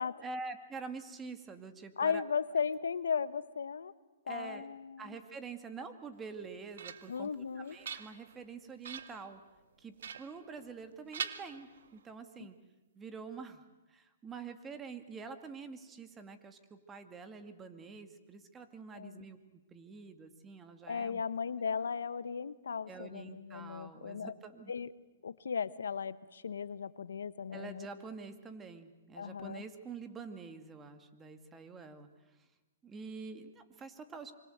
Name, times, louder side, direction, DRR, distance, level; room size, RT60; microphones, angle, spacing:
voice 1, 0.2-2.2 4.3-4.7 5.0-9.4 9.8-12.6 13.0-21.2 22.9-24.7 27.5-32.4 32.8-34.3, right 4 dB, 15° right, 8 dB, 2.3 m, -46 dB
voice 2, 2.0-3.9 4.3-5.2 7.1-7.8 18.9-19.2 20.9-24.3 24.7-24.9 25.2-27.9 29.2-29.6, left 6 dB, 85° left, 16 dB, 1.0 m, -36 dB
sound 1, 6.3-7.3 7.7-8.4 8.8-9.3 10.0-10.9 11.1-12.1, right 8 dB, 70° right, 1.8 m, -44 dB
26.0 x 25.0 x 8.1 m, 1.1 s
hypercardioid pair, 140°, 0 cm